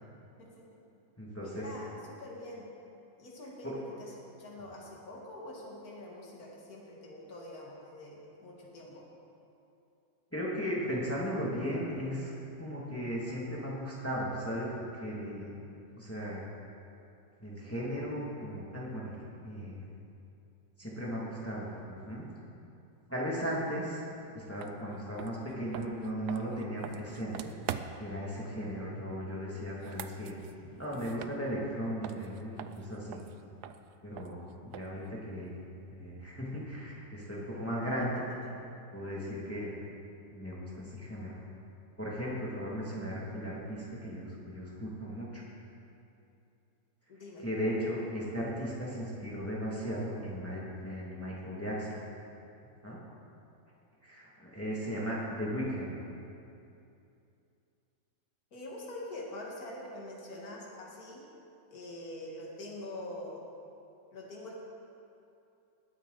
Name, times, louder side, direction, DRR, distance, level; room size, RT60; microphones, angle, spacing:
voice 1, 0.4-0.8 1.4-2.7 3.2-9.0 38.0-38.1 38.4-38.6 42.8-42.9 47.1-47.5 58.5-61.3 61.7-63.5 64.1-64.6, left 1 dB, 55° left, -3 dB, 2.4 m, -45 dB
voice 2, 1.2-1.6 10.3-12.3 12.6-15.6 16.0-16.5 17.4-19.1 19.4-19.8 20.8-22.3 23.1-24.0 24.3-27.5 28.0-30.3 30.8-33.2 34.0-35.5 35.9-38.2 38.9-39.7 40.3-41.4 42.0-45.4 47.4-52.0 52.8-53.0 54.0-55.9, equal, 5° left, -6 dB, 2.3 m, -36 dB
sound 1, 24.6-24.7 25.1-28.2 29.7-31.8 32.0-35.1, right 10 dB, 70° right, 1.0 m, -44 dB
19.5 x 9.0 x 4.1 m, 2.7 s
omnidirectional pair, 2.0 m